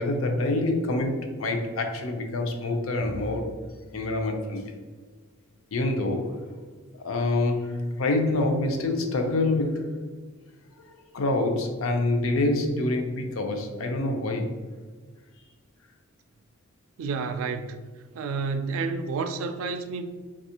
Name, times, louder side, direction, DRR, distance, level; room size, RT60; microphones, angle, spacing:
voice 1, 0.0-3.5 3.9-4.7 5.7-6.4 7.0-9.8 11.1-14.5, left 2 dB, 90° left, 4 dB, 0.5 m, -26 dB
voice 2, 17.0-17.9 18.1-20.0, right 4 dB, 85° right, 8 dB, 0.3 m, -30 dB
3.4 x 2.3 x 2.7 m, 1.4 s
head